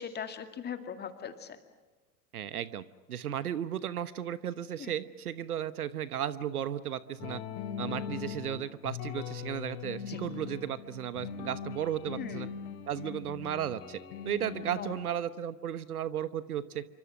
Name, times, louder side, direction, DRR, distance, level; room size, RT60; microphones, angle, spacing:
voice 1, 0.0-1.6 4.8-4.9 10.0-10.2 12.2-12.5 14.8-14.9, left 7 dB, 20° left, 8 dB, 2.2 m, -40 dB
voice 2, 2.3-2.8 3.1-7.4 7.8-12.5 12.9-14.0 14.2-16.8, right 10 dB, 65° right, 16 dB, 1.2 m, -35 dB
sound 1, 7.2-15.1, left 8 dB, 40° left, 2.5 m, -40 dB
28.0 x 25.0 x 6.3 m, 1.3 s
figure-of-eight pair, 90°, 48 cm